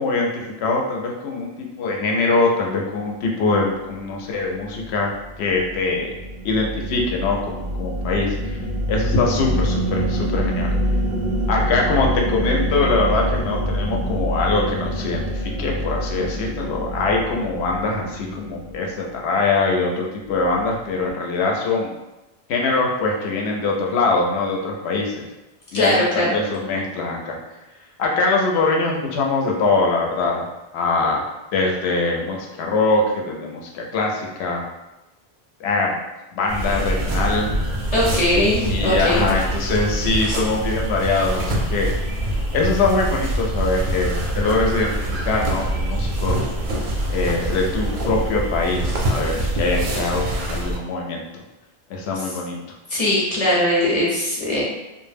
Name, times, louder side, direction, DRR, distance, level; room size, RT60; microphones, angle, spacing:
voice 1, 0.0-5.1 5.4-6.1 6.4-8.6 8.9-10.8 11.5-21.9 22.5-25.3 25.7-27.4 28.0-30.4 30.7-31.2 31.5-34.6 35.6-36.0 36.3-37.5 38.6-41.9 42.5-44.9 45.2-46.5 47.1-51.4 51.9-52.6, left 3 dB, 80° left, 0 dB, 0.8 m, -22 dB
sound 1, 4.6-19.1, equal, 90° right, 0.8 m, -26 dB
voice 2, 25.7-26.3 37.9-39.2 52.9-54.7, left 1 dB, 45° left, -5 dB, 0.6 m, -20 dB
sound 2, 36.5-50.8, right 1 dB, 60° right, 0.6 m, -24 dB
2.1 x 2.0 x 3.3 m, 0.99 s
omnidirectional pair, 1.1 m